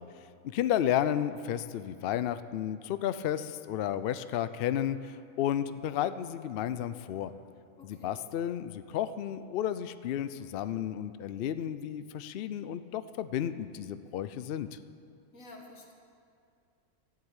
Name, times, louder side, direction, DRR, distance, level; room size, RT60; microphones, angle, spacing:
voice 1, 0.0-7.3 7.8-14.8, left 10 dB, 80° left, 13 dB, 0.5 m, -32 dB
voice 2, 7.8-8.1 15.3-15.9, left 2 dB, 60° left, 0 dB, 2.1 m, -50 dB
13.0 x 7.7 x 8.8 m, 2.3 s
omnidirectional pair, 1.5 m